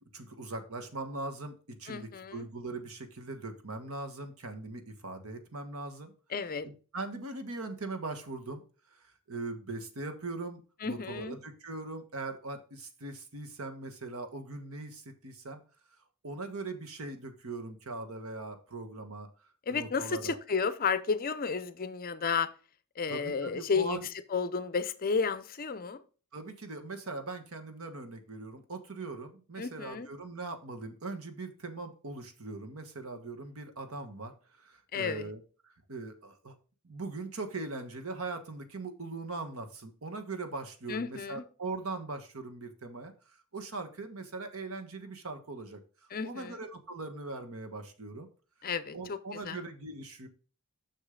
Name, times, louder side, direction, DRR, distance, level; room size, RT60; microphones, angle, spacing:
voice 1, 0.0-6.1 6.6-8.6 8.9-15.6 16.2-19.3 19.7-20.4 23.1-24.1 26.3-36.5 36.8-45.8 46.2-48.3 48.9-50.3, right 3 dB, 65° right, 1.3 m, -40 dB
voice 2, 1.9-2.5 6.3-6.7 10.8-11.4 19.7-22.5 23.0-24.0 24.3-26.0 29.6-30.1 34.9-35.3 40.9-41.4 46.1-46.6 48.6-49.2 49.4-49.6, left 5 dB, 40° left, 0.6 m, -32 dB
6.6 x 6.4 x 3.7 m
head